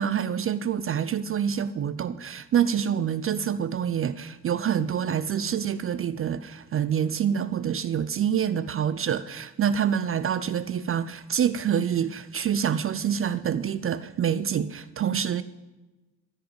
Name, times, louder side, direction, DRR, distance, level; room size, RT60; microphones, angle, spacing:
voice 1, 0.0-15.4, right 8 dB, 30° right, 0.5 m, -26 dB
13.5 x 5.4 x 9.2 m
hypercardioid pair, 60°, 45 cm